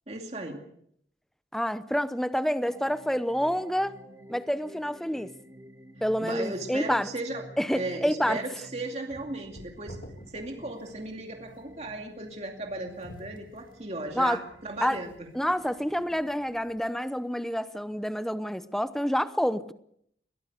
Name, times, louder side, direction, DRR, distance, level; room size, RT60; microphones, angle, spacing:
voice 1, 0.1-0.6 6.2-7.4 7.7-10.0 10.3-15.1, right 2 dB, 35° right, 2.5 m, -36 dB
voice 2, 1.5-3.9 4.3-5.3 6.0-7.1 7.6-8.4 14.1-14.4 14.8-15.0 15.3-19.7, equal, ahead, 0.7 m, -28 dB
sound 1, 2.6-16.6, right 1 dB, 15° right, 3.1 m, -52 dB
sound 2, 9.1-16.9, equal, 50° left, 2.4 m, -51 dB
22.5 x 18.0 x 6.8 m
head